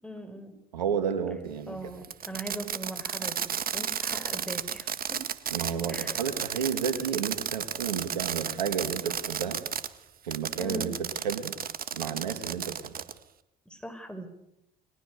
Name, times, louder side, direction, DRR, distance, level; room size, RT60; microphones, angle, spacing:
voice 1, 0.0-0.6 1.7-5.2 5.9-6.2 10.6-10.9 13.6-14.3, right 1 dB, 5° left, 7 dB, 6.8 m, -40 dB
voice 2, 0.7-1.8 5.5-9.6 10.2-11.5 11.9-13.0, right 7 dB, 90° right, 8 dB, 2.5 m, -31 dB
Fireworks, 2.0-9.9 10.3-13.2, right 8 dB, 45° right, 1.8 m, -33 dB
29.5 x 22.5 x 6.9 m, 0.82 s
hypercardioid pair, 55°, 21 cm